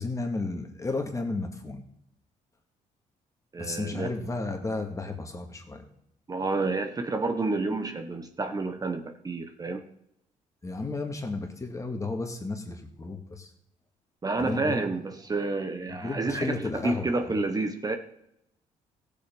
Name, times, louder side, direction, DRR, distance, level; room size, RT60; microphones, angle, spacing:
voice 1, 0.0-1.8 3.6-5.8 10.6-13.5 14.4-14.9 15.9-17.4, left 3 dB, 25° left, 4 dB, 2.1 m, -33 dB
voice 2, 3.5-4.1 6.3-9.8 14.2-18.0, right 3 dB, 25° right, 7 dB, 1.0 m, -29 dB
15.5 x 7.0 x 5.5 m, 0.77 s
cardioid pair, 85°, 14 cm